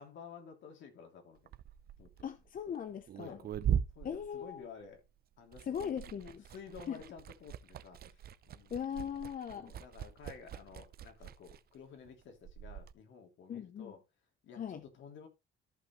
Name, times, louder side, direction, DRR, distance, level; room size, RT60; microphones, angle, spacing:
voice 1, 0.0-1.5 2.0-2.1 3.2-3.5 3.9-5.0 5.4-5.9 6.5-8.7 9.5-14.0 14.4-15.3, left 6 dB, 70° left, 3.1 m, -52 dB
Liquid, 1.4-5.1 5.3-12.9, right 9 dB, 50° right, 0.6 m, -41 dB
voice 2, 2.2-3.4 4.0-4.7 5.6-6.4 6.9-7.0 8.7-9.7 13.5-13.9 14.6-14.8, left 8 dB, 45° left, 0.8 m, -39 dB
14.0 x 5.6 x 3.2 m
cardioid pair, 120°, 20 cm